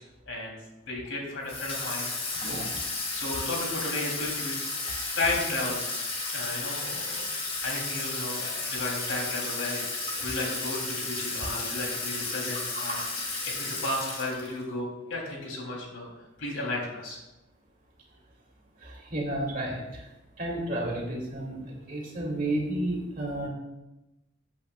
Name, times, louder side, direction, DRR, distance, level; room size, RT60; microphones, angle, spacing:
voice 1, 0.9-2.4 3.1-4.5 5.1-5.8 6.3-16.1 16.4-17.2, left 2 dB, 75° left, -2 dB, 3.2 m, -34 dB
Water tap faucet / Sink (filling or washing), 1.5-14.6, left 3 dB, 30° left, 1.9 m, -33 dB
voice 2, 18.8-19.9 20.4-23.5, right 1 dB, 40° right, -2 dB, 2.6 m, -32 dB
15.5 x 8.4 x 2.4 m, 1.0 s
head